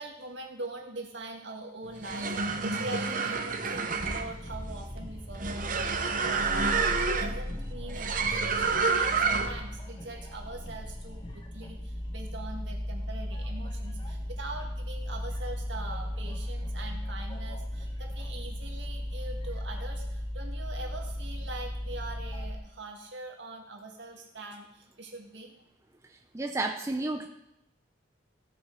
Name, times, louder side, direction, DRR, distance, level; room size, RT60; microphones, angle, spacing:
voice 1, 0.0-25.5, right 2 dB, 65° right, 0 dB, 2.0 m, -43 dB
sound 1, 1.9-9.7, right 4 dB, 45° right, 0.8 m, -29 dB
sound 2, 4.0-22.5, left 1 dB, 25° left, 1.1 m, -36 dB
voice 2, 26.3-27.3, right 2 dB, 15° right, 4 dB, 0.5 m, -31 dB
16.0 x 6.5 x 4.8 m, 0.85 s
head